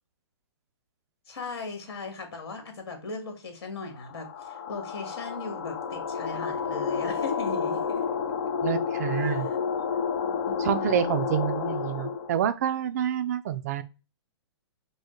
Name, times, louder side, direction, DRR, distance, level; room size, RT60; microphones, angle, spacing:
voice 1, 1.3-8.0 9.3-9.6 10.0-10.6, left 4 dB, 60° left, 1.7 m, -38 dB
sound 1, 4.0-12.4, left 6 dB, 40° left, 0.5 m, -30 dB
voice 2, 8.6-9.5 10.6-13.8, right 9 dB, 35° right, 0.4 m, -28 dB
5.0 x 2.1 x 3.7 m
hypercardioid pair, 165°, 14 cm